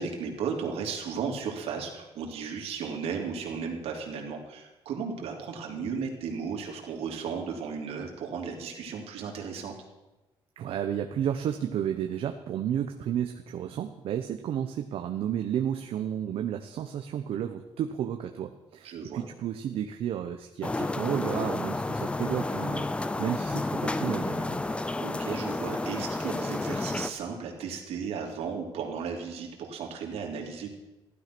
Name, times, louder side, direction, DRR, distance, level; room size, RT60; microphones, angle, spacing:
voice 1, 0.0-9.7 18.8-19.3 25.0-30.7, right 6 dB, 90° right, 1 dB, 3.0 m, -35 dB
voice 2, 10.6-24.6, right 9 dB, 70° right, 6 dB, 0.9 m, -32 dB
sound 1, 20.6-27.1, left 2 dB, 10° left, 0.5 m, -31 dB
15.5 x 12.0 x 6.1 m, 1.0 s
cardioid pair, 160°, 10 cm